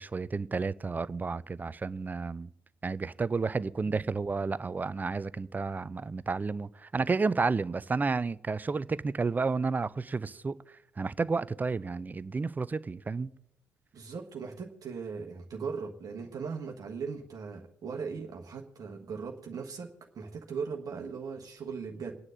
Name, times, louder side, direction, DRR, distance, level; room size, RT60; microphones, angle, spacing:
voice 1, 0.0-2.5 2.8-13.3, right 4 dB, 20° right, 0.4 m, -31 dB
voice 2, 13.9-22.2, right 5 dB, 45° right, 1.4 m, -39 dB
28.5 x 9.6 x 2.6 m
figure-of-eight pair, 45°, 9 cm